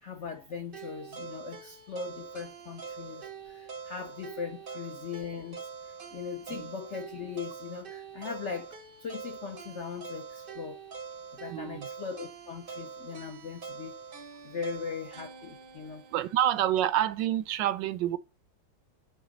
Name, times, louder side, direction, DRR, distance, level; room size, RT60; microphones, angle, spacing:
voice 1, 0.0-8.7 9.0-10.8 11.3-14.0 14.4-16.1, left 6 dB, 70° left, 0.6 m, -39 dB
sound 1, 0.7-16.8, right 6 dB, 50° right, 0.6 m, -44 dB
voice 2, 11.5-11.9 16.1-18.2, right 12 dB, 75° right, 1.2 m, -28 dB
9.0 x 3.5 x 5.1 m
omnidirectional pair, 2.1 m